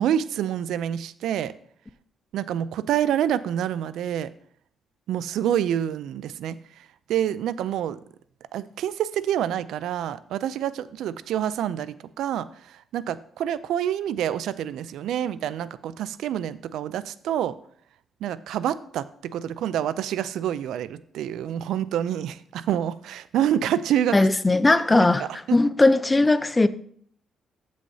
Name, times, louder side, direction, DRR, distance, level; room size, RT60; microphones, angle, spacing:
voice 1, 0.0-1.5 2.3-4.3 5.1-6.6 7.1-8.0 8.5-17.5 18.2-24.2 25.0-25.6, right 10 dB, 80° right, 0.4 m, -27 dB
voice 2, 24.1-26.7, left 2 dB, 20° left, 0.5 m, -19 dB
13.0 x 6.3 x 2.8 m
cardioid pair, 90°, 0 cm